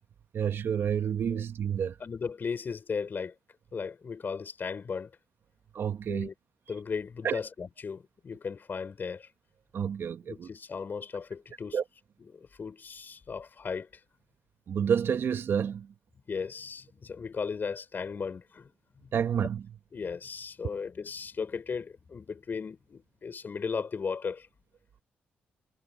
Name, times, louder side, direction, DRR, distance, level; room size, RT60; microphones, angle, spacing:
voice 1, 0.3-2.0 5.7-6.3 7.2-7.4 9.7-10.5 11.7-11.8 14.7-15.9 19.1-19.7, right 8 dB, 60° right, 1.7 m, -29 dB
voice 2, 2.0-3.3 3.7-5.1 6.1-6.3 6.7-9.3 10.3-11.8 12.3-13.9 16.3-18.7 19.0-19.1 19.9-24.5, left 5 dB, 50° left, 5.8 m, -36 dB
supercardioid pair, 55°, 4 cm